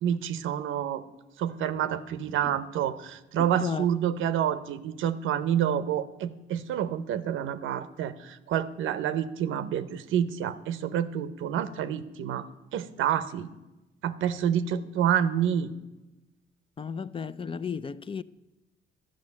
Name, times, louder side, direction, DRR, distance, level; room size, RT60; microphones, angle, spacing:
voice 1, 0.0-1.0 1.4-13.5 14.0-15.7, right 9 dB, 80° right, 0.7 m, -28 dB
voice 2, 3.4-3.9 16.8-18.2, left 6 dB, 25° left, 0.4 m, -34 dB
12.0 x 6.3 x 9.5 m
cardioid pair, 90°, 20 cm